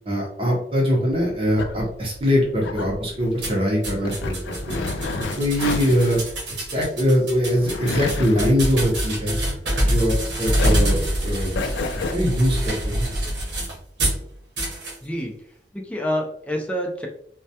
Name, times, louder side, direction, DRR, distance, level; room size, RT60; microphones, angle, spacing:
voice 1, 0.1-4.4 4.7-4.8 5.4-6.2 6.7-9.4 9.8-11.7 12.1-13.0, equal, 30° right, -2 dB, 0.7 m, -22 dB
sound 1, 1.1-10.2 10.5-12.1, left 3 dB, 90° left, 0.3 m, -31 dB
sound 2, 3.4-14.2 14.6-15.0, equal, 80° right, 0.8 m, -25 dB
voice 2, 15.0-17.1, equal, 5° left, 0 dB, 0.4 m, -28 dB
2.2 x 2.1 x 2.7 m, 0.63 s
head